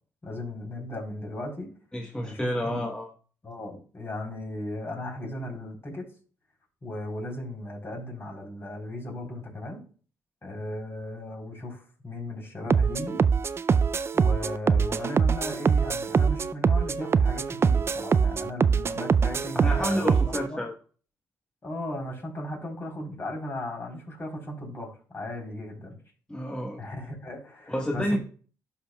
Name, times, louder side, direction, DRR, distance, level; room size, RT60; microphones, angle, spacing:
voice 1, 0.2-1.7 2.2-2.8 3.4-6.1 6.8-9.8 10.4-13.2 14.1-20.6 21.6-26.0 26.8-28.2, left 1 dB, 35° left, 1 dB, 3.7 m, -36 dB
voice 2, 1.9-3.1 19.5-20.7 26.3-26.8 27.7-28.2, equal, 10° left, 0 dB, 1.1 m, -29 dB
sound 1, 12.7-20.5, right 6 dB, 35° right, 0.4 m, -23 dB
11.5 x 5.5 x 2.3 m, 0.41 s
supercardioid pair, 60°, 7 cm